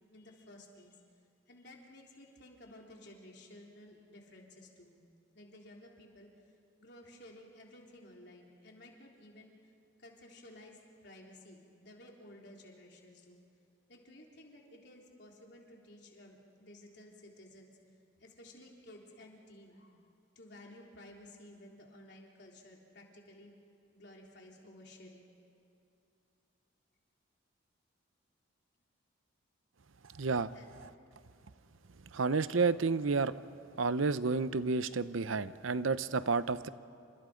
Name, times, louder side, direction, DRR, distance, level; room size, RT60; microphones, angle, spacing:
voice 1, 0.1-1.0 1.5-5.0 5.3-6.3 6.8-9.6 10.0-13.4 13.9-17.7 18.2-20.0 20.4-23.5 23.9-25.3 30.5-30.7, left 1 dB, 55° left, -1 dB, 3.8 m, -55 dB
voice 2, 30.2-30.5 32.1-33.3 33.8-36.7, right 4 dB, 80° right, 14 dB, 0.7 m, -30 dB
29.0 x 27.0 x 5.2 m, 2.7 s
head